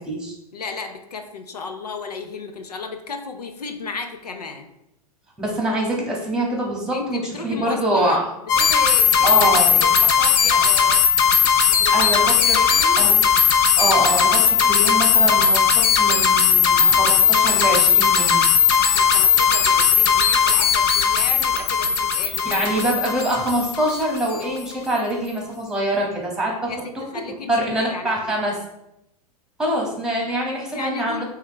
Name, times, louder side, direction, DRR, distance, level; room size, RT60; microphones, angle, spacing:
voice 1, 0.0-0.3 5.4-8.3 9.2-9.8 11.9-12.6 13.0-13.2 13.8-18.4 22.4-26.7 27.5-28.6 29.6-31.2, right 1 dB, 5° right, -2 dB, 2.1 m, -24 dB
voice 2, 0.5-4.7 6.9-8.2 8.6-11.0 11.7-12.1 12.4-13.1 18.9-22.6 26.7-26.8 27.1-28.3 30.7-31.2, left 4 dB, 85° left, 6 dB, 0.8 m, -34 dB
sound 1, 8.5-24.4, left 7 dB, 50° left, 0.8 m, -17 dB
7.8 x 3.7 x 3.3 m, 0.83 s
hypercardioid pair, 100°, 20 cm